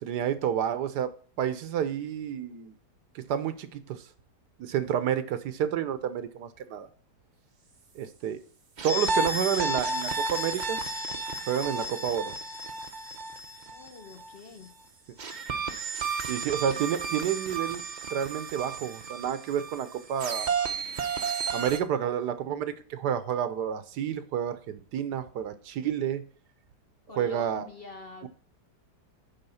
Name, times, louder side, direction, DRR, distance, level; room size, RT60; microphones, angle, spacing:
voice 1, 0.0-2.7 3.1-4.0 4.6-6.9 7.9-8.4 8.8-10.8 11.5-12.3 16.3-17.8 18.1-20.5 21.5-26.2 27.1-27.7 28.2-28.3, right 9 dB, 80° right, 1.4 m, -30 dB
sound 1, 8.8-14.4 15.2-21.8, right 3 dB, 40° right, 0.7 m, -32 dB
voice 2, 13.6-14.7 27.1-28.3, left 3 dB, 45° left, 0.8 m, -45 dB
9.7 x 3.6 x 7.0 m
omnidirectional pair, 1.8 m